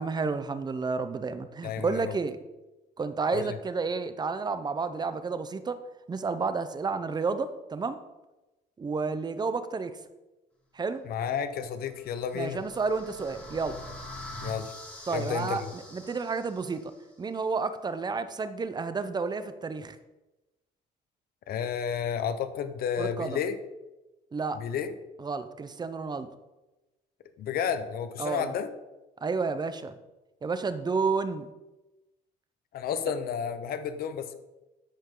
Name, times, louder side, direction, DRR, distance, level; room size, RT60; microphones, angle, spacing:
voice 1, 0.0-2.4 3.0-5.8 6.1-8.0 8.8-9.9 10.7-11.0 12.3-13.8 15.1-16.9 17.2-20.0 23.0-23.4 24.3-24.6 25.2-26.3 28.2-28.5 29.2-30.0 30.4-31.5, right 4 dB, 25° right, 11 dB, 0.7 m, -31 dB
voice 2, 1.6-2.1 3.3-3.5 11.0-12.6 14.4-14.7 15.1-15.7 21.5-23.6 24.6-24.9 27.4-28.7 32.7-34.3, left 7 dB, 65° left, 10 dB, 0.9 m, -31 dB
sound 1, 11.9-17.0, left 1 dB, 10° left, 3.1 m, -44 dB
13.0 x 5.3 x 3.8 m, 1.1 s
cardioid pair, 110°, 17 cm